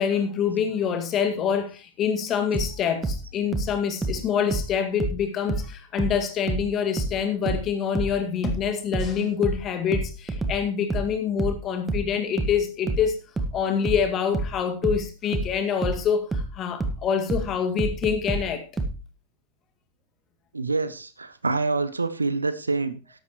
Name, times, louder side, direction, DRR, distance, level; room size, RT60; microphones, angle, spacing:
voice 1, 0.0-13.2 13.5-18.6, left 7 dB, 30° left, 2.1 m, -26 dB
sound 1, 2.5-5.7 6.0-19.0, right 2 dB, 10° right, 1.5 m, -28 dB
voice 2, 20.5-23.0, right 3 dB, 80° right, 1.0 m, -26 dB
13.5 x 11.5 x 3.1 m
figure-of-eight pair, 90°, 0 cm